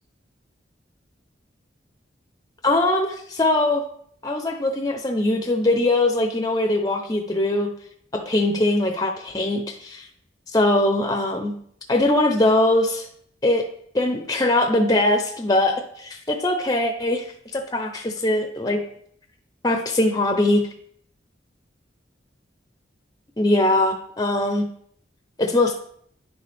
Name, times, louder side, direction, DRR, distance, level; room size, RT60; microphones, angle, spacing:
voice 1, 2.6-3.8 4.2-7.7 8.1-10.1 10.5-11.5 11.9-13.1 13.4-13.7 13.9-18.8 19.6-20.6 23.4-24.7 25.4-25.7, left 1 dB, 20° left, 5 dB, 0.7 m, -21 dB
10.5 x 6.6 x 3.5 m, 0.65 s
head